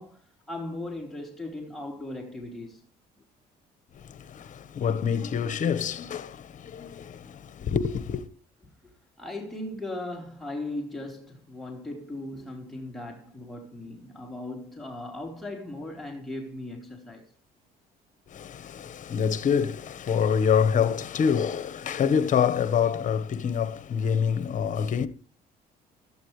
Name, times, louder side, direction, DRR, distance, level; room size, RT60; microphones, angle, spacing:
voice 1, 0.0-2.8 8.8-8.9 9.2-17.3, left 2 dB, ahead, 4.4 m, -38 dB
voice 2, 3.9-8.2 18.3-25.1, left 7 dB, 50° left, 1.4 m, -26 dB
17.0 x 13.0 x 3.3 m
cardioid pair, 110°, 17 cm